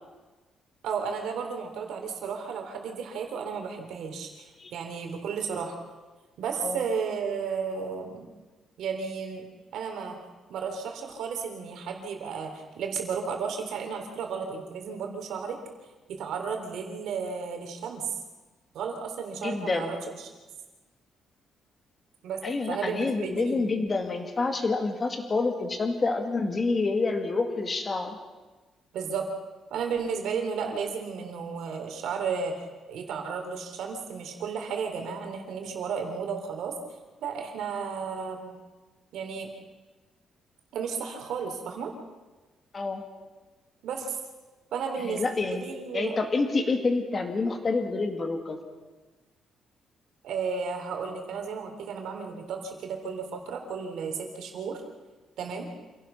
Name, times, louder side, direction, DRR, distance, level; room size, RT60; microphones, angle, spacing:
voice 1, 0.8-5.8 6.4-8.3 8.8-9.5 9.7-10.1 10.5-15.6 16.1-18.1 18.7-20.3 22.2-23.7 28.9-29.3 29.7-32.5 32.9-36.7 37.2-38.5 39.1-39.5 40.7-41.9 43.8-44.2 44.7-45.2 45.5-46.2 50.2-54.8 55.4-55.7, right 6 dB, 70° right, 3 dB, 3.6 m, -33 dB
voice 2, 19.4-20.0 22.4-28.2 42.7-43.0 45.0-45.6 45.9-48.6, left 3 dB, 25° left, 5 dB, 2.2 m, -28 dB
27.5 x 17.0 x 5.8 m, 1.3 s
cardioid pair, 165°, 0 cm